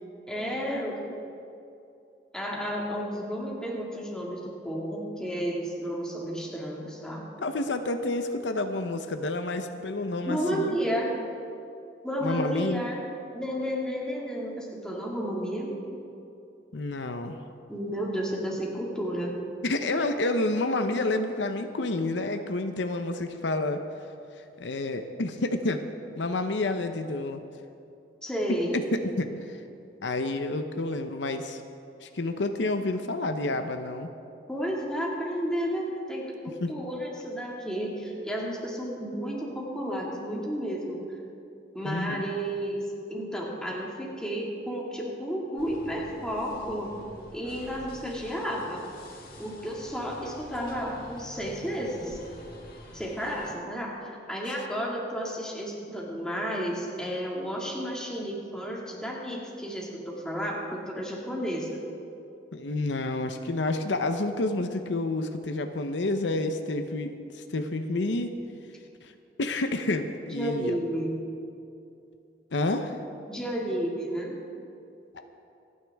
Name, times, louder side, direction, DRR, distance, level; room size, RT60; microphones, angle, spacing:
voice 1, 0.3-1.2 2.3-7.3 10.3-11.2 12.0-13.0 13.3-15.8 17.7-19.4 28.2-28.8 34.5-41.0 41.7-47.0 47.3-48.9 49.4-52.2 52.9-61.8 70.3-71.2 73.3-74.4, equal, 5° left, -3 dB, 2.1 m, -32 dB
voice 2, 7.4-10.8 12.2-12.8 16.7-17.4 19.6-23.8 24.6-25.8 26.2-27.4 28.5-28.6 28.9-29.6 30.0-31.6 32.0-34.1 36.6-36.7 41.8-42.2 62.5-68.3 69.0-69.1 69.4-70.8 72.5-73.0, left 2 dB, 80° left, 7 dB, 0.8 m, -29 dB
sound 1, 45.6-53.5, left 1 dB, 55° left, 2.4 m, -47 dB
27.0 x 9.5 x 3.5 m, 2.6 s
head